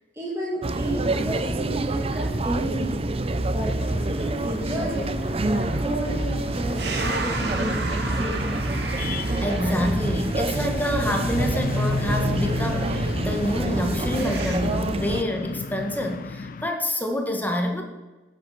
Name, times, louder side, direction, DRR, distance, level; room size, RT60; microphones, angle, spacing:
voice 1, 0.1-8.7, right 1 dB, 15° right, -6 dB, 2.7 m, -32 dB
sound 1, 0.6-15.2, right 2 dB, 35° right, 0.7 m, -27 dB
sound 2, 3.8-16.7, left 3 dB, 50° left, 0.4 m, -33 dB
sound 3, 6.8-14.6, right 2 dB, 65° right, 2.1 m, -33 dB
voice 2, 9.4-17.8, left 1 dB, 10° left, 2 dB, 1.7 m, -27 dB
15.0 x 9.4 x 6.0 m, 1.2 s
head